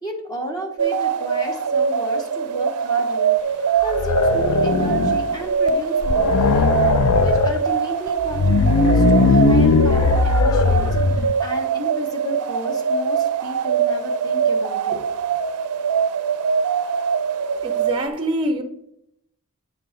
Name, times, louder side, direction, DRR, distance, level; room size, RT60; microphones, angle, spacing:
voice 1, 0.0-3.3 3.8-6.7 7.2-15.0, equal, 15° left, 1.0 m, -32 dB
sound 1, 0.8-18.1, right 7 dB, 85° right, 0.4 m, -23 dB
sound 2, 3.8-5.3 5.7-5.8 6.0-7.6 8.2-11.3, left 4 dB, 75° left, 0.5 m, -18 dB
voice 2, 17.6-18.6, right 1 dB, 25° right, 0.5 m, -24 dB
9.0 x 5.6 x 3.8 m
head